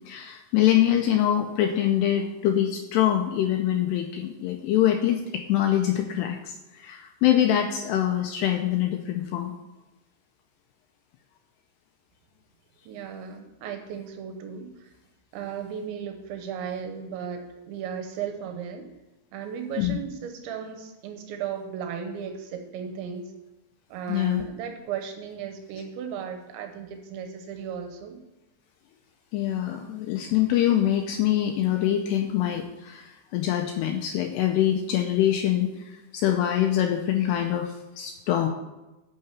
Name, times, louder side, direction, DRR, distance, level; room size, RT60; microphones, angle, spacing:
voice 1, 0.1-9.5 19.8-19.9 24.1-24.4 29.3-38.5, left 11 dB, 80° left, 4 dB, 2.5 m, -24 dB
voice 2, 12.9-14.9 15.3-18.9 19.3-23.3 23.9-28.2, right 7 dB, 85° right, 5 dB, 3.1 m, -35 dB
9.6 x 5.7 x 7.0 m, 1.0 s
omnidirectional pair, 5.4 m